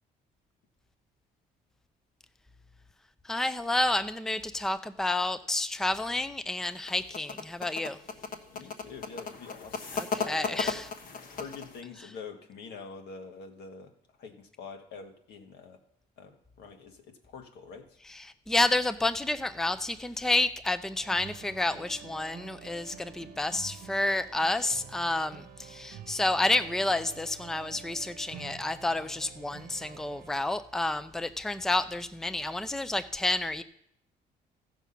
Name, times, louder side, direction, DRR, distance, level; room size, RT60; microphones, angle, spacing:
voice 1, 3.2-8.0 9.9-10.9 18.1-33.6, left 2 dB, 5° left, 12 dB, 0.5 m, -30 dB
sound 1, 6.6-11.8, left 5 dB, 60° left, 1.3 m, -36 dB
voice 2, 8.5-10.8 11.3-13.9 14.2-15.8 16.2-18.0, left 5 dB, 75° left, 4 dB, 1.6 m, -45 dB
sound 2, 21.0-30.4, right 8 dB, 65° right, 0.9 m, -48 dB
14.5 x 6.0 x 5.7 m, 0.72 s
cardioid pair, 110°, 17 cm